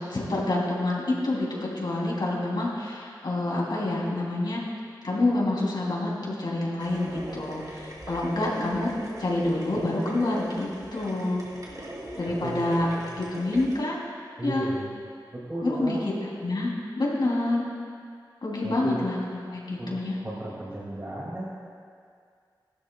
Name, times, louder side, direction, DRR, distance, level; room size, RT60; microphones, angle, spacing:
voice 1, 0.0-4.6 5.0-8.9 9.2-11.4 12.2-14.0 14.4-14.7 15.6-16.0 16.4-17.7 18.4-20.2, left 2 dB, 70° left, -4 dB, 3.1 m, -27 dB
sound 1, 6.8-13.8, right 1 dB, 50° right, 2.7 m, -40 dB
voice 2, 12.3-12.6 12.9-13.1 14.4-15.0 15.3-16.0 18.6-19.0 19.8-19.9 20.2-21.5, right 1 dB, 30° right, -6 dB, 2.2 m, -34 dB
19.0 x 12.5 x 2.3 m, 2.2 s
wide cardioid pair, 85°, 8 cm